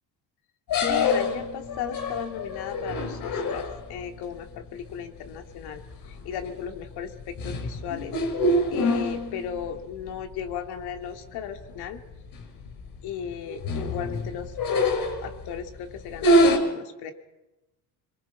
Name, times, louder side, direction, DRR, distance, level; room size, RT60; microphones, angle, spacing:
sound 1, 0.7-4.0 5.7-5.9 6.4-6.7 7.1-9.7 10.1-10.2 10.5-10.6 11.4-11.5 11.8-12.0 12.3-12.7 13.3-15.5 16.1-16.6, left 1 dB, 55° left, 5.9 m, -25 dB
sound 2, 0.8-4.8 5.2-5.5, left 6 dB, 30° left, 2.6 m, -40 dB
voice 1, 0.9-8.1 8.7-12.0 13.0-14.6 15.2-17.1, left 8 dB, 75° left, 5 dB, 3.0 m, -36 dB
26.0 x 23.0 x 5.9 m, 1.0 s
cardioid pair, 130°, 40 cm